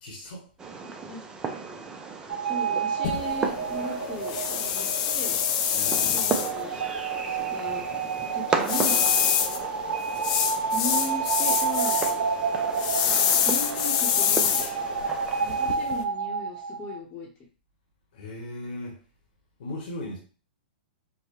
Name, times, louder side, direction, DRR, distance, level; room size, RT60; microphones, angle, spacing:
voice 1, 0.0-0.5 5.7-6.3 18.1-19.0 19.6-20.2, left 1 dB, 65° left, 1.1 m, -37 dB
Fireworks, 0.6-15.8, right 4 dB, 15° right, 0.4 m, -35 dB
voice 2, 0.8-1.2 2.3-5.4 6.0-6.8 7.2-7.8 8.3-9.0 10.7-12.0 13.0-14.6 15.4-17.3, left 1 dB, 25° left, 0.9 m, -37 dB
sound 1, 2.3-17.0, right 6 dB, 80° right, 0.5 m, -30 dB
sound 2, 3.0-16.0, left 9 dB, 45° left, 0.4 m, -27 dB
4.8 x 2.1 x 3.0 m
hypercardioid pair, 135°, 6 cm